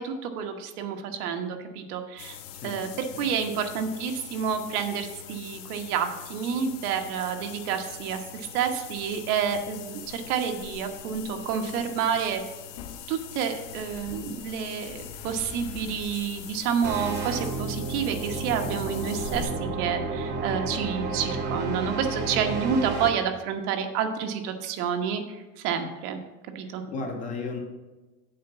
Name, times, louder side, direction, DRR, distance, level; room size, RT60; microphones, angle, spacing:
voice 1, 0.0-2.4 2.6-12.4 13.1-26.2 26.5-26.8, right 7 dB, 90° right, 5 dB, 1.2 m, -29 dB
sound 1, 2.2-19.5, left 8 dB, 45° left, 0.8 m, -42 dB
sound 2, 16.8-23.1, right 3 dB, 25° right, 0.7 m, -31 dB
voice 2, 26.9-27.6, left 3 dB, 20° left, 3 dB, 0.4 m, -34 dB
7.5 x 4.5 x 6.8 m, 1.2 s
cardioid pair, 175°, 44 cm